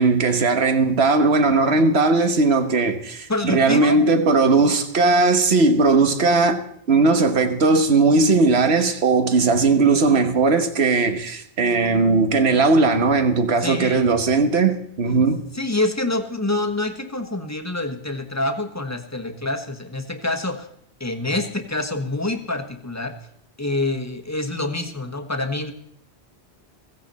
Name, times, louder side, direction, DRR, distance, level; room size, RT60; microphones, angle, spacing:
voice 1, 0.0-6.6 6.9-15.4, right 3 dB, 75° right, 1.5 m, -18 dB
voice 2, 3.3-4.0 13.6-14.1 15.5-20.7 21.0-23.1 23.6-25.7, left 2 dB, 15° left, 1.2 m, -26 dB
16.0 x 15.0 x 4.2 m
omnidirectional pair, 1.1 m